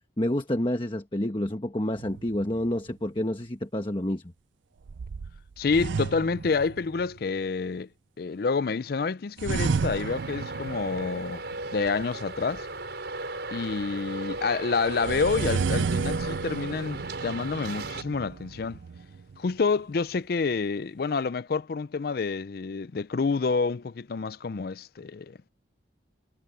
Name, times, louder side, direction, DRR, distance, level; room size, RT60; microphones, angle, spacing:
voice 1, 0.2-4.2, left 1 dB, 25° left, 1.3 m, -28 dB
sound 1, 2.0-2.9 4.9-7.2 9.4-11.5 14.9-19.5, right 5 dB, 80° right, 0.4 m, -32 dB
voice 2, 5.6-7.9 8.2-11.4 11.7-12.7 13.5-18.8 19.4-25.4, left 4 dB, 55° left, 0.4 m, -28 dB
Traffic noise roadway noise, 9.8-18.0, right 2 dB, 60° right, 6.0 m, -36 dB
head